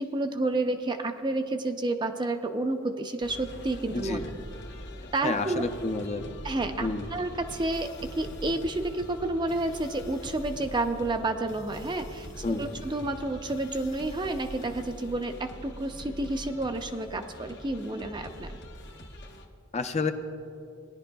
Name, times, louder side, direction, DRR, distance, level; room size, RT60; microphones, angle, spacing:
voice 1, 0.0-4.2 5.1-5.7 6.4-18.6, right 2 dB, 25° right, 7 dB, 0.5 m, -30 dB
sound 1, 3.2-19.4, equal, 55° left, 0.9 m, -43 dB
voice 2, 5.2-6.3 6.8-7.1 12.4-12.6 19.7-20.1, left 3 dB, 35° left, 7 dB, 0.5 m, -29 dB
19.0 x 11.0 x 2.3 m, 2.5 s
head